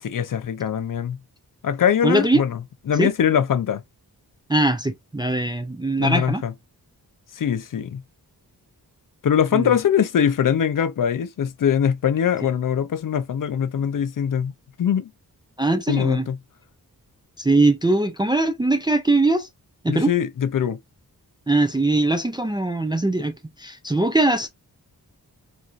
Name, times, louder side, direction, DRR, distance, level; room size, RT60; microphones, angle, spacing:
voice 1, 0.0-1.2 1.6-2.6 2.9-3.8 6.0-6.5 7.3-8.0 9.2-14.5 14.8-15.1 15.9-16.4 19.9-20.8, left 8 dB, 60° left, 0.5 m, -22 dB
voice 2, 2.0-2.4 3.0-3.1 4.5-6.4 9.5-9.8 15.6-16.3 17.4-19.5 19.8-20.1 21.5-24.5, right 2 dB, 15° right, 0.3 m, -21 dB
4.2 x 2.5 x 2.4 m
wide cardioid pair, 150°, 37 cm